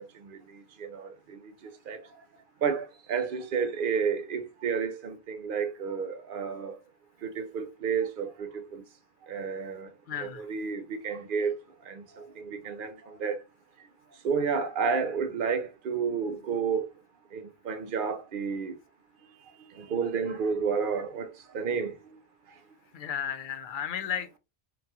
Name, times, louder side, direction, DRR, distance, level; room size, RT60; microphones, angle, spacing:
voice 1, 0.8-2.0 2.6-6.8 7.2-8.8 9.3-9.9 10.2-11.5 11.9-13.4 14.2-16.9 17.3-18.7 19.7-21.9, right 6 dB, 60° right, 0.7 m, -31 dB
voice 2, 10.1-10.4 22.9-24.4, left 8 dB, 60° left, 0.6 m, -34 dB
3.8 x 2.3 x 2.8 m
omnidirectional pair, 1.0 m